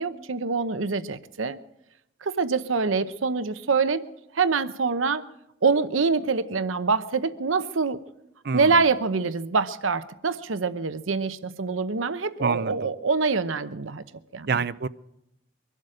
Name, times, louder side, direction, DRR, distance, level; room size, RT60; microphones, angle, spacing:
voice 1, 0.0-1.6 2.2-4.0 4.3-5.3 5.6-8.0 8.5-14.0 14.3-14.5, right 4 dB, 90° right, 12 dB, 0.8 m, -25 dB
voice 2, 8.4-8.8 12.4-12.9 14.5-14.9, right 5 dB, 55° right, 16 dB, 0.5 m, -27 dB
23.5 x 12.0 x 5.0 m, 0.85 s
head